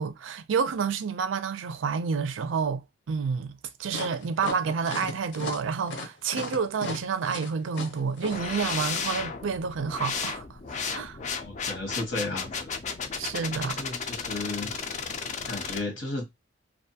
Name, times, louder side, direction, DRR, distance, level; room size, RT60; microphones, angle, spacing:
voice 1, 0.0-3.5 3.8-10.6 10.9-11.2 13.2-13.8, right 5 dB, 85° right, 0.4 m, -29 dB
sound 1, 3.9-8.9, left 2 dB, 65° left, 0.8 m, -36 dB
sound 2, 8.3-15.8, left 5 dB, 40° left, 0.4 m, -34 dB
voice 2, 11.4-12.8 13.6-14.7 15.4-16.3, left 2 dB, 85° left, 1.2 m, -34 dB
2.5 x 2.2 x 2.7 m
head